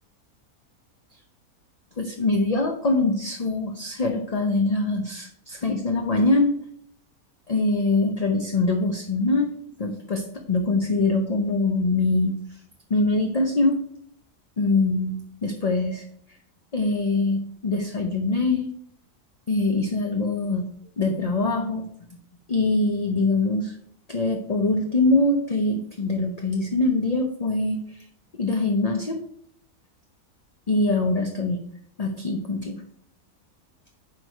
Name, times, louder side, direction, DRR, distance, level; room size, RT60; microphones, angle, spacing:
voice 1, 2.0-6.5 7.5-9.5 9.8-12.3 12.9-13.8 14.6-15.2 15.4-16.0 16.7-18.7 19.5-20.6 21.0-22.2 22.5-23.8 24.1-28.1 28.4-29.2 30.7-31.6 32.0-32.8, left 2 dB, 35° left, 3 dB, 0.6 m, -23 dB
9.5 x 4.7 x 4.5 m, 0.64 s
omnidirectional pair, 1.6 m